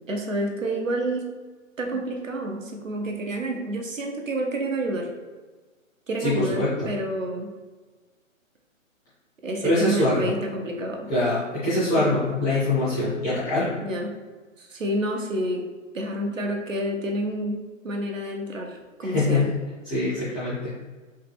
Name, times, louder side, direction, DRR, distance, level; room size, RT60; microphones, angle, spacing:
voice 1, 0.1-1.2 1.8-5.1 6.1-7.5 9.4-11.1 11.9-12.2 13.8-14.1 14.6-15.6 15.9-19.5, right 1 dB, 70° right, 2 dB, 1.0 m, -29 dB
voice 2, 6.2-6.9 9.6-10.3 11.1-13.7 19.0-19.5 19.8-20.7, left 2 dB, 5° left, -13 dB, 0.4 m, -24 dB
5.5 x 2.3 x 3.3 m, 1.3 s
figure-of-eight pair, 135°, 40 cm